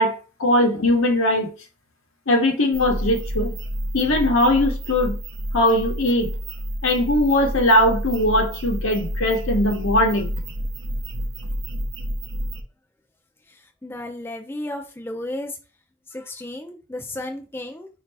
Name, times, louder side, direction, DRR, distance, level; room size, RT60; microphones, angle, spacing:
voice 1, 0.0-1.5 2.3-3.5 3.9-5.2 5.5-6.3 6.8-10.3, left 1 dB, 80° left, 0.9 m, -20 dB
sound 1, 2.7-12.6, equal, 70° right, 0.6 m, -29 dB
voice 2, 13.8-15.6 16.1-17.9, left 1 dB, 10° left, 0.4 m, -33 dB
4.2 x 2.6 x 3.3 m
head